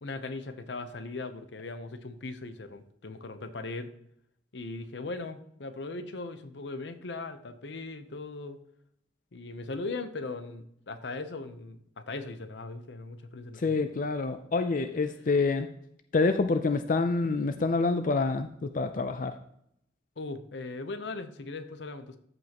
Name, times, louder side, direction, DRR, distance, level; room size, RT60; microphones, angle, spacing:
voice 1, 0.0-3.9 4.5-8.6 9.3-13.8 20.2-22.2, left 3 dB, 80° left, 10 dB, 0.7 m, -39 dB
voice 2, 13.6-15.7 16.1-19.3, left 3 dB, 50° left, 8 dB, 0.5 m, -27 dB
13.5 x 5.4 x 2.9 m, 0.72 s
head